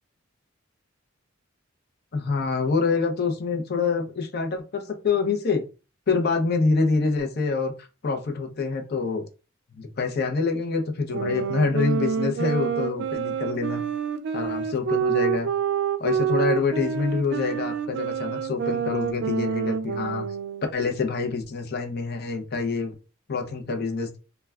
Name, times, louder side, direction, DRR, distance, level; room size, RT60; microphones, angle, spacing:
voice 1, 2.1-5.6 6.1-7.7 8.0-9.2 9.8-13.8 14.3-15.5 16.0-20.2 20.7-22.9 23.3-24.2, left 4 dB, 55° left, 4 dB, 0.6 m, -26 dB
sound 1, 11.1-20.8, right 7 dB, 60° right, 0.3 m, -27 dB
2.2 x 2.2 x 3.4 m, 0.31 s
head